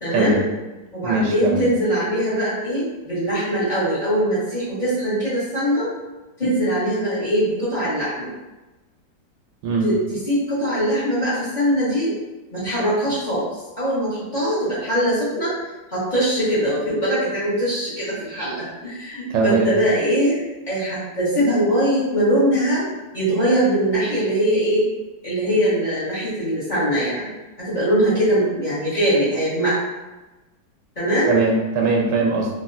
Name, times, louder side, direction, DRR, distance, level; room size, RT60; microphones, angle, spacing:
voice 1, 0.0-0.4 0.9-5.9 6.4-8.3 9.8-10.0 10.3-12.1 12.5-15.5 15.9-20.4 20.7-22.8 23.1-24.9 25.2-27.3 27.6-29.8 31.0-31.4, right 1 dB, 30° left, -11 dB, 1.1 m, -21 dB
voice 2, 1.0-1.7 9.6-9.9 19.3-19.7 31.3-32.5, right 3 dB, 80° right, 0 dB, 1.2 m, -20 dB
3.2 x 2.6 x 2.6 m, 1.1 s
omnidirectional pair, 1.9 m